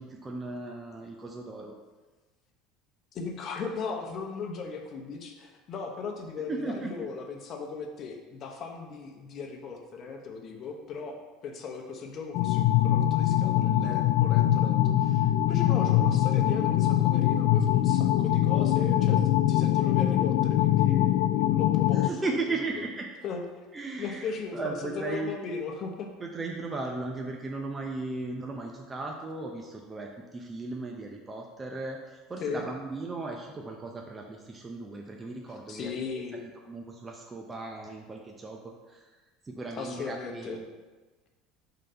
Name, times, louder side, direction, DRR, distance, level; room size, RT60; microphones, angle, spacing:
voice 1, 0.0-1.8 6.5-6.9 21.9-23.1 23.7-25.3 26.2-39.1 39.4-40.7, right 3 dB, 20° right, 1 dB, 0.6 m, -36 dB
voice 2, 3.1-22.1 22.7-22.8 23.2-23.4 24.0-26.1 32.4-32.6 35.5-36.4 39.8-40.6, left 5 dB, 40° left, 3 dB, 0.9 m, -37 dB
sound 1, 12.3-22.1, left 12 dB, 65° left, 0.3 m, -23 dB
5.1 x 3.9 x 5.6 m, 1.3 s
cardioid pair, 135°, 0 cm